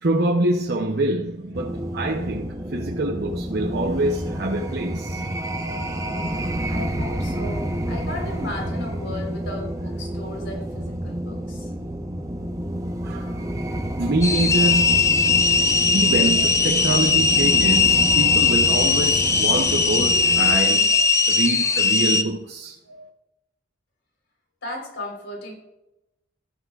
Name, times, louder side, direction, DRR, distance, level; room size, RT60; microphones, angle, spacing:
voice 1, 0.0-5.3 13.0-13.4 14.0-15.4 15.9-23.1, right 2 dB, 55° right, 0.8 m, -25 dB
sound 1, 1.5-20.6, right 1 dB, 15° right, 0.7 m, -29 dB
voice 2, 6.7-11.7 24.6-25.5, left 1 dB, 70° left, 3.9 m, -35 dB
sound 2, 14.2-22.2, left 4 dB, 15° left, 0.4 m, -19 dB
14.5 x 12.5 x 2.4 m
head